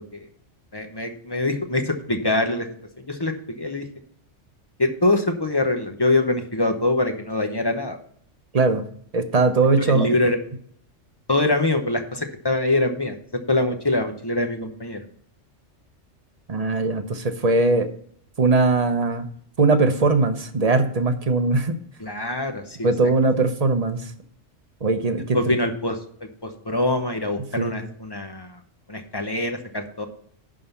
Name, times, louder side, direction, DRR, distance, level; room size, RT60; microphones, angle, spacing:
voice 1, 0.7-2.7 3.0-3.8 4.8-8.0 9.8-10.4 11.3-13.1 13.5-15.0 22.0-22.9 25.3-26.0 26.4-28.5 28.9-30.1, left 2 dB, 20° left, 5 dB, 0.8 m, -24 dB
voice 2, 8.5-8.8 9.1-10.1 16.5-17.9 18.4-19.3 19.6-21.8 22.8-24.1 24.8-25.5 27.6-27.9, right 3 dB, 35° right, 8 dB, 0.8 m, -20 dB
11.0 x 3.8 x 7.0 m, 0.62 s
omnidirectional pair, 1.3 m